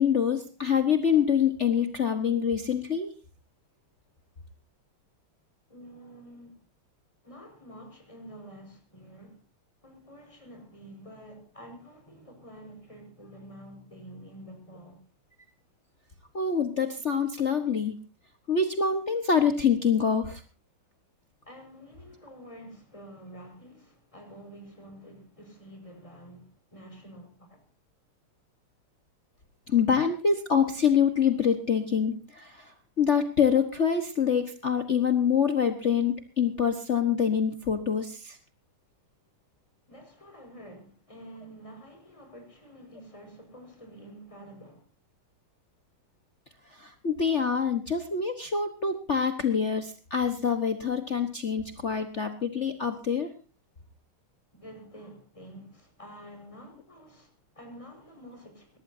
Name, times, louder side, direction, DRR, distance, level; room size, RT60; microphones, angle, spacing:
voice 1, 0.0-3.1 16.3-18.0 18.5-20.4 29.7-38.4 46.7-53.3, left 7 dB, 40° left, 1.4 m, -25 dB
voice 2, 5.7-6.6 7.2-9.4 9.8-15.0 21.4-27.6 39.9-44.9 54.5-58.8, equal, 15° left, 5.3 m, -48 dB
22.0 x 19.0 x 2.7 m
omnidirectional pair, 2.3 m